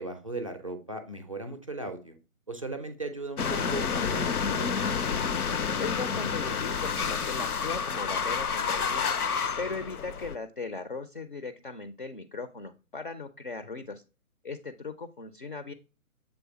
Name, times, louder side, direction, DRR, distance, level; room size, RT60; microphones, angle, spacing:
voice 1, 0.0-2.2 2.5-4.7, right 2 dB, 25° right, 8 dB, 0.4 m, -37 dB
sound 1, 3.4-10.3, left 6 dB, 85° left, 0.6 m, -29 dB
voice 2, 5.8-9.1 9.6-14.0 14.4-15.7, left 4 dB, 40° left, 10 dB, 0.4 m, -38 dB
7.0 x 3.3 x 4.1 m, 0.33 s
figure-of-eight pair, 135°, 44 cm